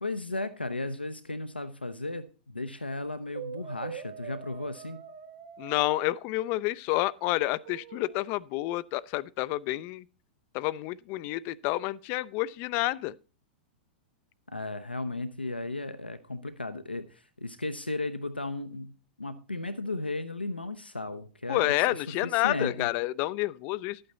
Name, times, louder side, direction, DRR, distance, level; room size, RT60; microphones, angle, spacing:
voice 1, 0.0-5.0 14.5-22.9, left 2 dB, 85° left, 0.7 m, -35 dB
Brass instrument, 3.3-6.1 7.6-8.2, right 8 dB, 65° right, 2.6 m, -43 dB
voice 2, 5.6-10.0 10.5-13.1 21.5-24.0, left 18 dB, 35° left, 0.4 m, -29 dB
12.0 x 8.8 x 4.0 m
figure-of-eight pair, 100°, 5 cm